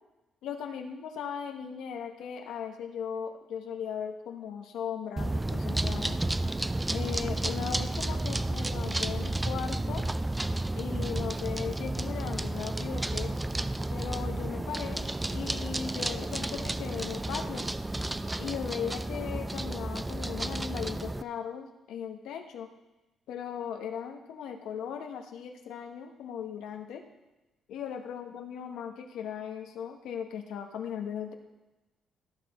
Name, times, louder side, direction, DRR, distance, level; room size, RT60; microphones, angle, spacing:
voice 1, 0.4-6.2 6.9-10.0 10.8-13.3 13.9-17.7 18.4-22.7 23.3-27.0 27.7-31.3, left 8 dB, 85° left, 4 dB, 1.0 m, -38 dB
sound 1, 5.2-21.2, right 2 dB, 15° right, 0.4 m, -32 dB
13.5 x 5.8 x 4.2 m, 1.0 s
cardioid pair, 90°, 0 cm